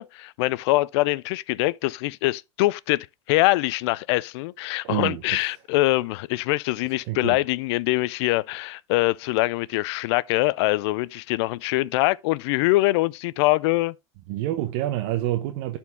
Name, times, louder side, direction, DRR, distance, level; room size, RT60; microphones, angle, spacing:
voice 1, 0.0-13.9, left 19 dB, 70° left, 0.4 m, -23 dB
voice 2, 4.8-5.4 7.1-7.4 14.3-15.8, right 14 dB, 65° right, 0.9 m, -27 dB
11.0 x 4.4 x 3.5 m
hypercardioid pair, 100°, 15 cm